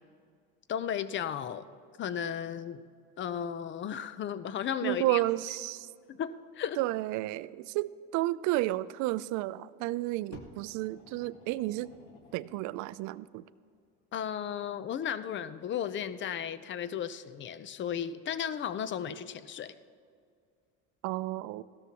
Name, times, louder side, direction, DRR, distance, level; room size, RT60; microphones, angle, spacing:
voice 1, 0.7-1.7 2.0-2.8 3.2-5.2 6.1-6.8 14.1-19.7, left 9 dB, 35° left, 14 dB, 0.6 m, -35 dB
voice 2, 4.8-5.9 6.8-11.9 12.3-13.4 21.0-21.6, right 17 dB, 60° right, 18 dB, 0.4 m, -32 dB
Fire, 10.3-13.1 14.0-14.1, left 3 dB, 65° left, 1.7 m, -54 dB
16.5 x 13.0 x 2.9 m, 2.2 s
supercardioid pair, 100°, 33 cm